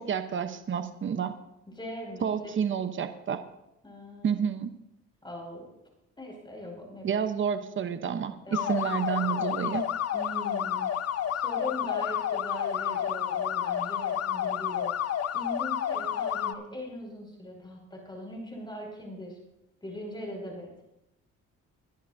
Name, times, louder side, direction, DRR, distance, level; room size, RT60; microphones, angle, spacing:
voice 1, 0.0-1.3 2.2-3.4 4.2-4.8 7.0-9.9, right 7 dB, 40° right, 10 dB, 0.9 m, -30 dB
voice 2, 1.7-2.5 3.8-4.4 5.2-5.7 6.2-7.1 8.4-9.7 10.1-10.9 11.3-15.0 15.3-19.4 19.8-20.7, left 1 dB, 15° left, 0 dB, 5.7 m, -40 dB
sound 1, 8.5-16.5, left 10 dB, 55° left, 0.7 m, -30 dB
21.5 x 11.0 x 2.7 m, 0.87 s
cardioid pair, 90°, 30 cm